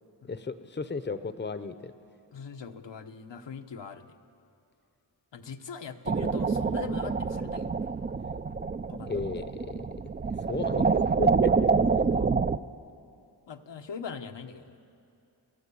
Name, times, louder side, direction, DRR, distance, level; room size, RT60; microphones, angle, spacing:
voice 1, 0.3-1.9 9.1-9.8 10.5-10.9 11.2-11.7, left 4 dB, 25° left, 11 dB, 0.7 m, -34 dB
voice 2, 2.3-4.1 5.3-7.7 8.9-9.2 12.1-12.3 13.5-14.9, left 6 dB, 85° left, 6 dB, 1.1 m, -41 dB
sound 1, 6.1-12.6, right 4 dB, 25° right, 0.4 m, -27 dB
28.5 x 13.0 x 8.4 m, 2.5 s
wide cardioid pair, 95°, 42 cm